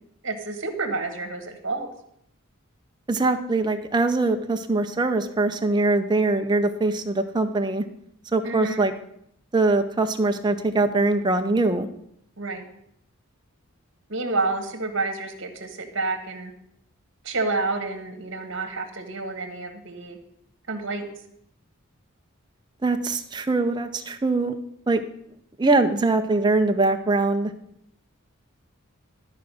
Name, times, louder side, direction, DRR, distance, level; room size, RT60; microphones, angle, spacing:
voice 1, 0.2-1.9 8.4-8.8 12.4-12.6 14.1-16.5 17.2-20.2 20.7-21.1, right 3 dB, 55° right, 6 dB, 1.4 m, -29 dB
voice 2, 3.1-7.8 8.3-8.9 9.5-11.9 22.8-24.6 24.9-25.0 25.6-27.5, right 2 dB, 20° right, 6 dB, 0.6 m, -22 dB
12.5 x 4.8 x 6.2 m, 0.73 s
head